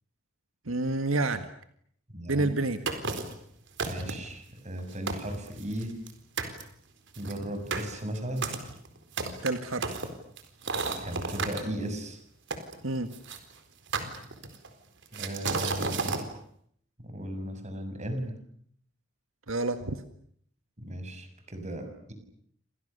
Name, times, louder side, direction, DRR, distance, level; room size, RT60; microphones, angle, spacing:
voice 1, 0.7-1.5 2.3-2.8 9.4-10.0 12.8-13.1 19.5-20.0, right 2 dB, 85° right, 9 dB, 1.8 m, -28 dB
voice 2, 2.1-2.5 3.8-5.9 7.2-8.5 11.0-12.2 15.1-16.2 17.0-18.3 20.8-22.1, right 1 dB, 35° right, 7 dB, 6.5 m, -36 dB
sound 1, 2.9-3.4 3.8-4.3 4.8-4.9 5.1-6.1 6.4-6.6 7.1-11.6 12.5-13.4 13.9-14.7 15.1-16.2, right 4 dB, 65° right, 4.2 m, -33 dB
29.5 x 26.5 x 6.8 m, 0.67 s
head